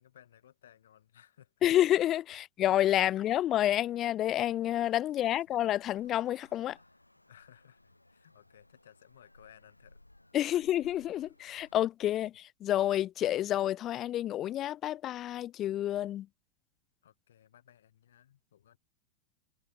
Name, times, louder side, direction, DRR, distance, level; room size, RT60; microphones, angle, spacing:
voice 1, 0.0-1.5 4.7-4.8 5.5-5.6 6.8-7.0 7.3-10.0 11.6-11.7 17.0-18.8, left 10 dB, 60° left, 6.6 m, -60 dB
voice 2, 1.6-6.8 10.3-16.3, left 12 dB, 30° left, 0.4 m, -29 dB
Traffic noise roadway noise, 5.7-11.8, left 1 dB, 85° left, 5.1 m, -61 dB
figure-of-eight pair, 90°, 0 cm